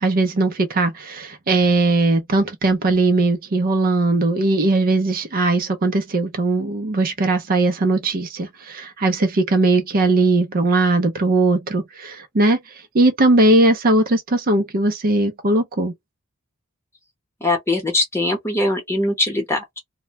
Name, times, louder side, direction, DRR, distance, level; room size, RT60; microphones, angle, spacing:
voice 1, 0.0-12.6 12.9-15.9, right 2 dB, 45° right, 0.5 m, -19 dB
voice 2, 17.4-19.8, left 2 dB, 10° left, 0.9 m, -21 dB
2.1 x 2.1 x 2.8 m
head